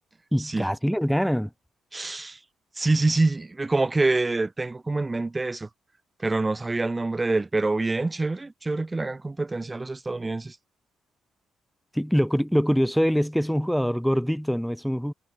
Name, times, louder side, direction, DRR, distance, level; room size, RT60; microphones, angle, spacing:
voice 1, 0.3-1.5 11.9-15.1, equal, ahead, 2.5 m, -24 dB
voice 2, 1.9-2.4 2.8-5.7 6.2-10.6, right 2 dB, 20° right, 3.5 m, -26 dB
cardioid pair, 105°, 0 cm